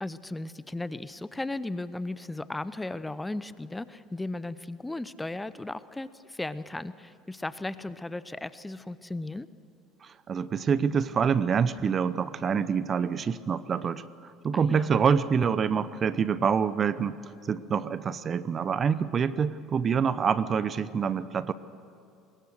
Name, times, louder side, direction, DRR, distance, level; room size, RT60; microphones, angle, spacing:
voice 1, 0.0-9.5 14.5-14.9, left 2 dB, 10° left, 15 dB, 0.7 m, -36 dB
voice 2, 10.0-17.2 17.5-21.5, right 6 dB, 40° right, 16 dB, 0.8 m, -26 dB
24.0 x 21.0 x 6.5 m, 2.6 s
hypercardioid pair, 75°, 0 cm